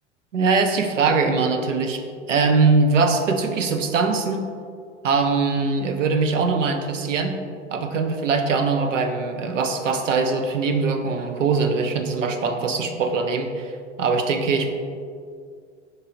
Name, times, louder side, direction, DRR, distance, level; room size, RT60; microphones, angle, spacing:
voice 1, 0.3-2.0 2.3-4.5 5.0-7.4 7.7-13.7 14.0-14.7, right 4 dB, 80° right, 6 dB, 0.7 m, -22 dB
5.4 x 4.5 x 3.8 m, 2.2 s
figure-of-eight pair, 85°, 37 cm